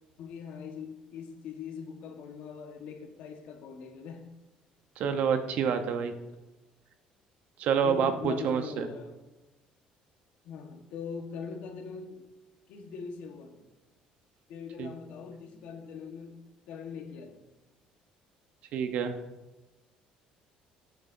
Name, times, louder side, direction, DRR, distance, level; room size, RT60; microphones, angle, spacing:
voice 1, 0.2-4.3 7.8-9.1 10.4-12.2 12.7-13.6 14.5-16.4 16.7-17.4, left 6 dB, 70° left, 4 dB, 1.3 m, -41 dB
voice 2, 5.0-6.1 7.6-8.9 14.8-14.9 18.7-19.1, right 7 dB, 65° right, 8 dB, 0.9 m, -28 dB
13.0 x 7.4 x 2.7 m, 1.1 s
cardioid pair, 130°, 3 cm